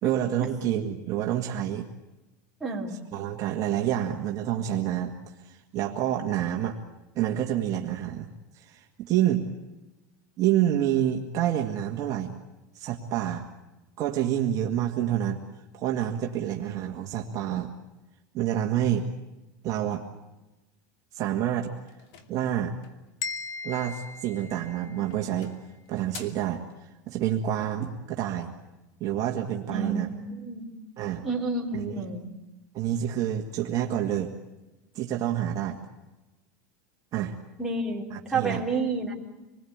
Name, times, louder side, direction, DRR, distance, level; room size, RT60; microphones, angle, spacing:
voice 1, 0.0-1.9 3.1-5.1 5.4-6.8 7.2-8.3 8.5-9.4 10.4-12.3 12.7-13.5 14.0-15.4 15.7-17.7 18.3-19.1 19.6-20.0 21.1-21.7 22.3-22.7 23.6-25.5 25.9-26.6 27.1-28.5 29.0-30.1 31.0-31.2 31.7-32.0 32.7-34.3 35.0-35.8 37.1-37.4 38.1-38.6, right 11 dB, 35° right, 1 dB, 1.9 m, -28 dB
voice 2, 2.6-3.0 29.7-30.7 31.2-32.3 37.6-39.1, right 3 dB, 5° right, -3 dB, 3.5 m, -30 dB
sound 1, 21.9-23.1 24.4-24.8 25.1-26.5, left 7 dB, 50° left, 2.5 m, -48 dB
sound 2, 23.2-25.2, left 5 dB, 35° left, 1.4 m, -37 dB
27.0 x 20.5 x 8.8 m, 1.0 s
supercardioid pair, 150°, 10 cm